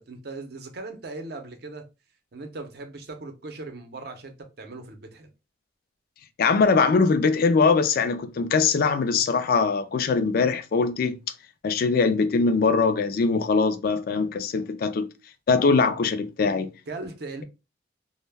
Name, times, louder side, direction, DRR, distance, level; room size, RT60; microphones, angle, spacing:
voice 1, 0.0-1.9 2.3-5.3 16.9-17.4, right 3 dB, 60° right, 0.6 m, -38 dB
voice 2, 6.4-11.2 11.6-15.1 15.5-16.7, left 4 dB, 55° left, 0.3 m, -22 dB
2.2 x 2.1 x 3.2 m
head